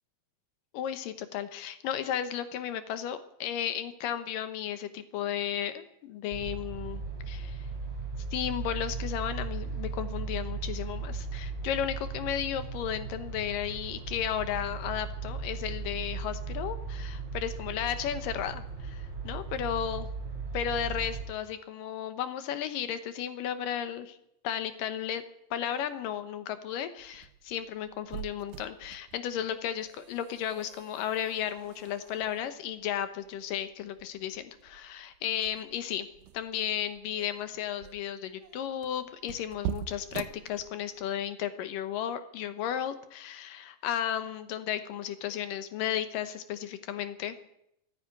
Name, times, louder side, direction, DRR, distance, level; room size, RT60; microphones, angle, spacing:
voice 1, 0.7-7.5 8.3-20.1 20.5-24.2 24.4-25.2 25.5-36.1 36.3-47.4, left 10 dB, 75° left, 10 dB, 2.7 m, -34 dB
sound 1, 6.3-21.2, right 4 dB, 20° right, 4.5 m, -37 dB
sound 2, 27.0-41.1, right 11 dB, 80° right, 2.4 m, -44 dB
15.0 x 10.0 x 9.5 m, 0.79 s
omnidirectional pair, 4.1 m